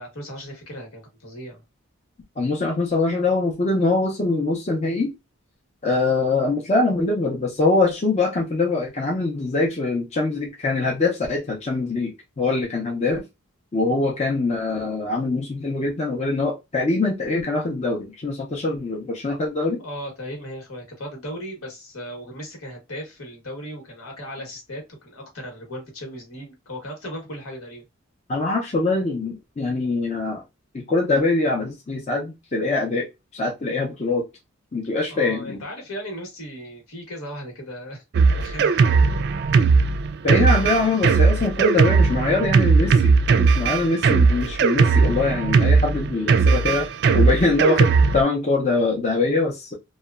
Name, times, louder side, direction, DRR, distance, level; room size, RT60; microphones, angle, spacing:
voice 1, 0.0-1.6 19.8-27.8 35.1-38.0 38.4-39.2, equal, 75° left, 1.1 m, -36 dB
voice 2, 2.4-5.1 5.8-13.2 13.7-19.8 28.3-30.4 30.7-33.1 33.3-34.2 34.7-35.6 40.2-46.9 47.1-49.7, left 3 dB, 30° left, 0.5 m, -23 dB
Drum kit, 38.1-48.2, right 4 dB, 50° right, 0.3 m, -18 dB
2.8 x 2.1 x 2.3 m
head